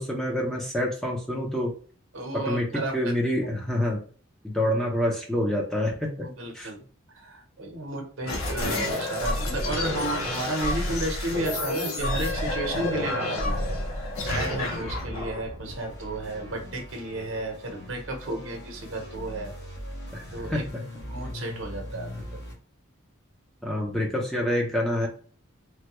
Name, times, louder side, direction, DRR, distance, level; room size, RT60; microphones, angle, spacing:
voice 1, 0.0-1.7 2.5-4.0 4.4-6.3 6.5-6.7 20.1-20.6 23.6-25.1, left 1 dB, ahead, -2 dB, 0.5 m, -27 dB
voice 2, 2.1-3.1 6.2-6.9 7.1-19.5 20.3-20.7 21.1-22.4, right 2 dB, 70° right, 3 dB, 0.8 m, -33 dB
sound 1, 8.2-16.5, left 2 dB, 85° left, 0.8 m, -29 dB
sound 2, 15.6-22.5, left 1 dB, 55° left, 1.1 m, -40 dB
3.2 x 2.2 x 2.9 m, 0.42 s
head